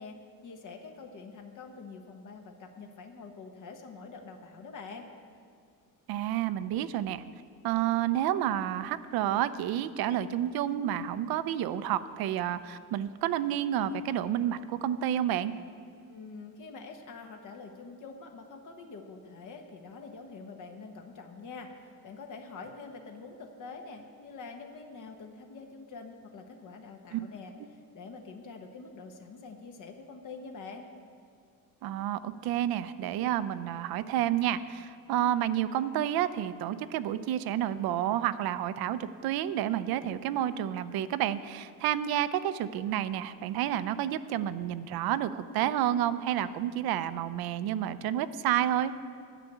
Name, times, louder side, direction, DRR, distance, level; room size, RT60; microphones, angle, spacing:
voice 1, 0.0-5.1 16.1-30.9, left 4 dB, 55° left, 3 dB, 1.1 m, -46 dB
voice 2, 6.1-7.2 7.6-15.5 27.1-27.2 31.8-48.9, right 11 dB, 80° right, 13 dB, 0.6 m, -30 dB
10.0 x 6.8 x 8.4 m, 2.3 s
cardioid pair, 110°, 36 cm